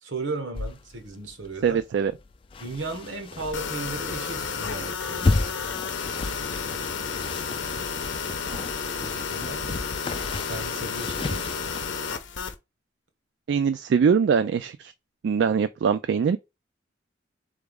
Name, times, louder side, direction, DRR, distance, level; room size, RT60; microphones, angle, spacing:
voice 1, 0.0-1.8 2.6-5.6 9.0-9.8 10.4-11.6, right 3 dB, 90° right, 1.2 m, -36 dB
sound 1, 0.5-11.9, left 3 dB, 30° left, 0.3 m, -33 dB
voice 2, 1.6-2.1 13.5-14.9 15.2-16.4, right 6 dB, 70° right, 0.3 m, -22 dB
sound 2, 3.5-12.5, left 5 dB, 85° left, 0.7 m, -32 dB
3.9 x 3.5 x 3.5 m
head